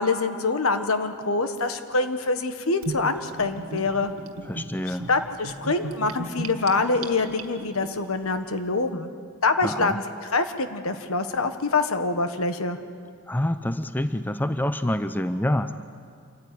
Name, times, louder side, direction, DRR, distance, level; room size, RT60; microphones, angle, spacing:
voice 1, 0.0-4.1 4.9-9.1 9.4-12.8, left 3 dB, 80° left, 8 dB, 1.4 m, -25 dB
Gurgling / Bathtub (filling or washing), 2.8-7.9, right 2 dB, 85° right, 1.8 m, -36 dB
voice 2, 4.5-5.1 9.6-10.0 13.3-15.7, left 1 dB, 10° left, 11 dB, 0.5 m, -27 dB
26.5 x 14.5 x 9.3 m, 2.3 s
head